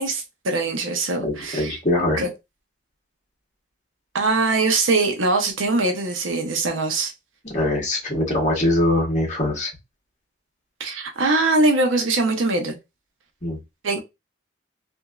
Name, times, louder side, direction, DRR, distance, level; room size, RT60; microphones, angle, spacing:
voice 1, 0.0-1.8 2.2-2.3 4.1-7.1 10.8-12.8 13.8-14.0, right 3 dB, 85° right, 0.7 m, -22 dB
voice 2, 1.2-2.2 7.5-9.7 13.4-13.6, left 1 dB, 35° left, 1.3 m, -22 dB
2.9 x 2.6 x 2.3 m
head